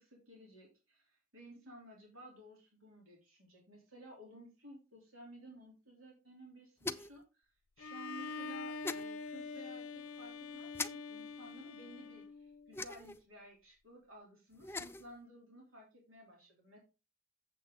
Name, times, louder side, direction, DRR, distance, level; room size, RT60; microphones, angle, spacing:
voice 1, 0.0-7.5 7.8-16.8, equal, 75° right, -1 dB, 3.6 m, -55 dB
sound 1, 6.8-7.2 8.8-9.0 10.7-10.9 12.7-13.2 14.5-15.1, left 3 dB, 10° left, 0.4 m, -40 dB
Bowed string instrument, 7.8-12.8, left 4 dB, 85° left, 0.7 m, -45 dB
8.1 x 7.5 x 3.8 m, 0.29 s
head